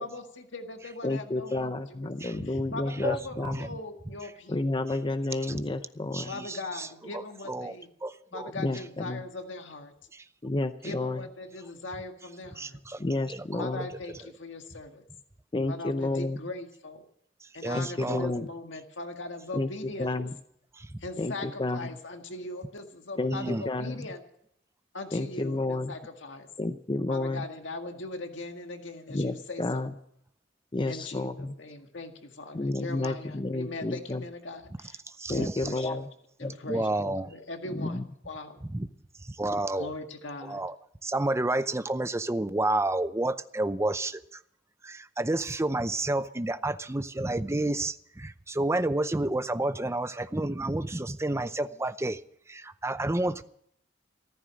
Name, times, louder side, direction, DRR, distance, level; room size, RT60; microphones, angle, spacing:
voice 1, 0.0-4.8 6.3-7.9 8.3-9.9 10.8-12.8 13.6-15.0 15.7-17.0 17.5-20.1 21.0-24.2 24.9-26.5 27.1-29.9 30.9-35.0 35.3-36.0 36.4-37.0 37.3-38.6 39.7-40.6, left 2 dB, 80° left, 5 dB, 1.8 m, -40 dB
voice 2, 1.0-3.7 4.5-6.3 8.6-9.2 10.4-11.2 13.0-13.9 15.5-16.4 17.7-18.5 19.5-19.7 20.0-20.3 21.2-21.9 23.2-24.1 25.1-25.9 26.6-27.4 29.1-29.9 30.7-31.5 32.5-34.2 35.3-36.1 36.4-37.1 37.7-38.0, left 2 dB, 25° left, 10 dB, 0.6 m, -31 dB
voice 3, 2.2-2.6 3.0-3.8 5.4-5.6 6.1-6.9 7.1-7.2 7.5-7.8 8.0-8.5 10.1-10.2 12.6-13.0 13.3-13.4 13.8-13.9 17.6-18.3 20.7-21.0 23.3-23.6 35.1-35.7 36.7-37.3 38.6-38.9 39.2-39.9 40.4-40.8 41.0-44.4 44.8-52.2 52.5-53.4, right 2 dB, 15° right, 13 dB, 0.6 m, -30 dB
15.0 x 13.5 x 6.3 m, 0.72 s
head